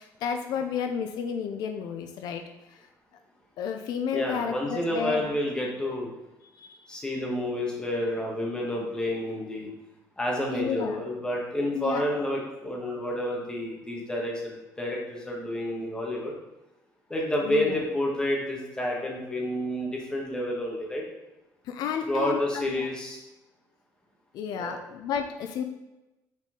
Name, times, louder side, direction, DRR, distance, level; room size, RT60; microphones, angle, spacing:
voice 1, 0.0-2.4 2.7-2.8 3.6-5.3 6.6-6.8 10.5-11.0 11.7-12.0 17.4-17.8 21.6-22.9 24.3-25.6, left 7 dB, 75° left, 6 dB, 0.5 m, -32 dB
voice 2, 4.1-6.1 6.9-9.7 10.2-16.3 17.1-21.0 22.0-23.2 24.6-24.8, left 1 dB, 10° left, -2 dB, 1.4 m, -29 dB
6.3 x 4.2 x 3.7 m, 1.0 s
cardioid pair, 135°, 7 cm